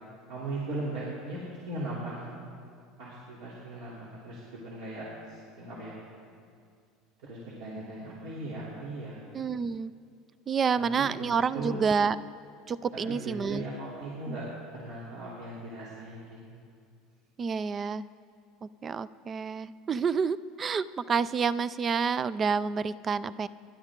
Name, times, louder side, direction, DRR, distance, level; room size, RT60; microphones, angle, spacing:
voice 1, 0.3-2.3 3.0-6.0 7.2-9.2 10.7-11.3 11.5-11.8 12.9-14.5 14.7-16.6, right 2 dB, 65° right, -6 dB, 3.2 m, -38 dB
voice 2, 9.3-9.9 10.5-12.2 12.7-13.7 14.3-14.4 17.4-18.0 18.6-23.5, right 5 dB, 25° right, 17 dB, 0.4 m, -29 dB
29.0 x 12.0 x 3.7 m, 2.3 s
cardioid pair, 160°, 0 cm